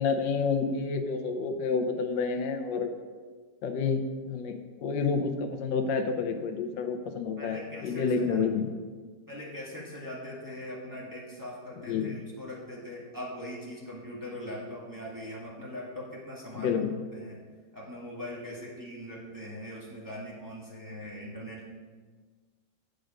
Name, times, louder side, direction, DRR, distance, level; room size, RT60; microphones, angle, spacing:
voice 1, 0.0-2.9 3.6-8.7 11.9-12.1 16.5-16.9, left 5 dB, 90° left, 6 dB, 1.5 m, -29 dB
voice 2, 7.4-8.5 9.3-16.7 17.1-17.4 17.7-21.7, left 1 dB, 10° right, -6 dB, 1.7 m, -41 dB
9.3 x 5.2 x 5.1 m, 1.5 s
omnidirectional pair, 1.9 m